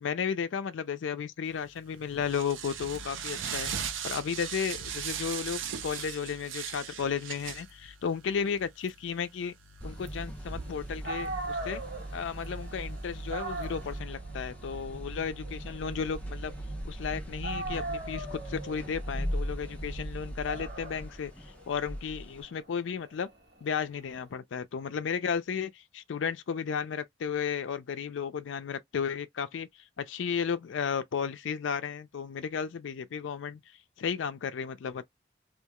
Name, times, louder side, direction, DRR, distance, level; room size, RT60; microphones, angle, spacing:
voice 1, 0.0-3.7 4.0-9.5 9.8-11.8 12.1-16.5 16.8-21.3 21.7-23.3 23.6-29.7 30.0-33.6 34.0-35.0, left 6 dB, 75° left, 0.4 m, -34 dB
sound 1, 1.6-14.0, right 7 dB, 80° right, 0.5 m, -40 dB
sound 2, 9.8-22.4, right 1 dB, 5° left, 0.4 m, -39 dB
Dog, 10.7-10.8 11.0-17.1 17.4-24.2, right 2 dB, 60° right, 1.2 m, -41 dB
2.4 x 2.3 x 2.8 m
head